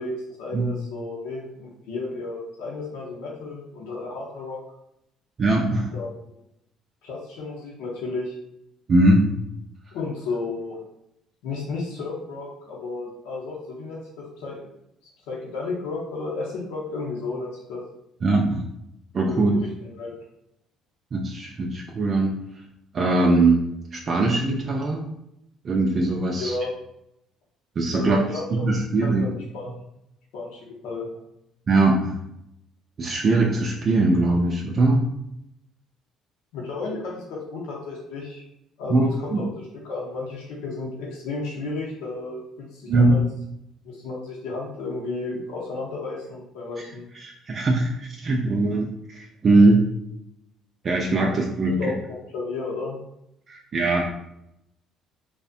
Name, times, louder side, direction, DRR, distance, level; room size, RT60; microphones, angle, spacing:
voice 1, 0.0-4.6 5.9-6.4 7.0-8.3 9.9-10.8 11.4-14.7 15.3-17.8 19.3-19.7 20.0-20.2 26.4-26.7 27.9-29.8 30.3-31.1 36.5-38.4 38.8-43.2 43.8-47.1 51.2-51.3 51.7-53.0, left 3 dB, 80° left, -4 dB, 0.6 m, -33 dB
voice 2, 5.4-5.9 8.9-9.2 18.2-18.6 19.1-19.5 21.1-22.4 22.9-23.6 23.9-25.1 25.6-26.5 27.8-28.2 28.5-29.3 31.7-32.2 33.0-35.0 38.9-39.4 42.9-43.2 47.2-49.8 50.8-51.8 53.5-54.0, right 2 dB, 45° right, -1 dB, 0.3 m, -21 dB
2.5 x 2.1 x 2.4 m, 0.80 s
hypercardioid pair, 65°, 0 cm